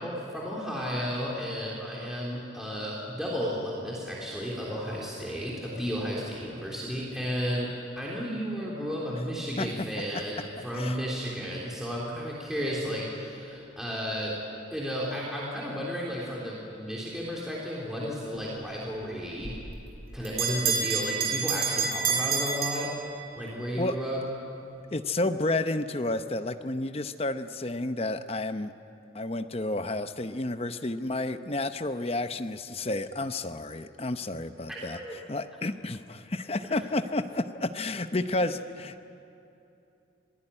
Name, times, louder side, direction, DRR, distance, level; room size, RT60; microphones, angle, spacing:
voice 1, 0.0-7.7 8.0-14.4 14.7-19.5 20.1-22.9 23.3-24.2 34.7-35.2 36.7-36.8, equal, 5° right, -5 dB, 3.6 m, -33 dB
Bell, 19.4-23.5, right 5 dB, 55° right, 4.8 m, -29 dB
voice 2, 24.9-28.7 29.1-35.0 35.3-39.0, left 2 dB, 30° left, 9 dB, 0.8 m, -31 dB
26.0 x 19.0 x 10.0 m, 2.8 s
head